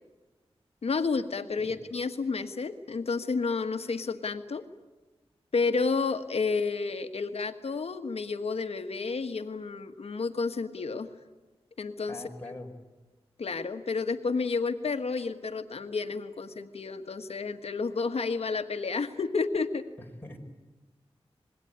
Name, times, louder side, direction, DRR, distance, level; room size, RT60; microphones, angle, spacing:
voice 1, 0.8-4.6 5.5-11.1 11.8-12.2 13.4-19.8, left 4 dB, 75° left, 8 dB, 1.5 m, -31 dB
voice 2, 12.1-12.7 20.0-20.4, left 1 dB, 20° left, 2 dB, 4.1 m, -43 dB
26.0 x 21.5 x 9.6 m, 1.2 s
wide cardioid pair, 80°, 11 cm